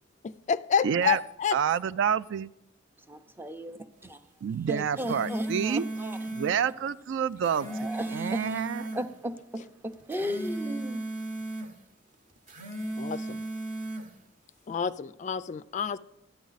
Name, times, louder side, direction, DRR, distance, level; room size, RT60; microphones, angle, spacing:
voice 1, 0.2-1.6 13.0-13.4 14.7-16.0, left 7 dB, 40° left, 0.3 m, -29 dB
voice 2, 0.8-1.2 1.5-2.5 4.4-5.9 6.3-7.7 8.1-8.9, right 7 dB, 65° right, 0.3 m, -28 dB
voice 3, 3.1-4.2 4.7-6.2 7.7-8.6 8.9-11.0, equal, 10° right, 0.5 m, -36 dB
sound 1, 4.8-6.6 7.3-9.1 9.9-11.7 12.4-14.1, right 1 dB, 40° right, 0.9 m, -35 dB
13.0 x 9.4 x 4.0 m
head